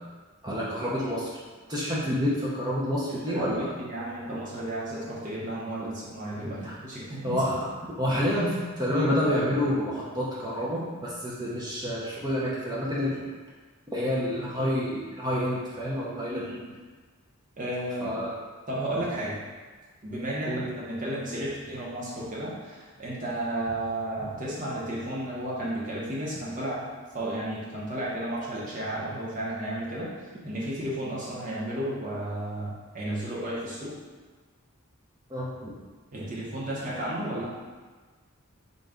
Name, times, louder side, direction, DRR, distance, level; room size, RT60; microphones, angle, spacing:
voice 1, 0.4-1.3 1.7-3.7 6.6-6.7 7.2-7.6 8.0-13.2 13.9-16.5 18.0-18.3 20.4-20.7 35.3-35.7, equal, 20° right, -6 dB, 0.5 m, -28 dB
voice 2, 3.2-7.4 16.3-16.7 17.6-18.2 18.7-19.4 20.0-30.1 30.4-33.9 36.1-37.5, right 1 dB, 35° right, -6 dB, 0.8 m, -33 dB
3.9 x 2.2 x 3.6 m, 1.4 s
head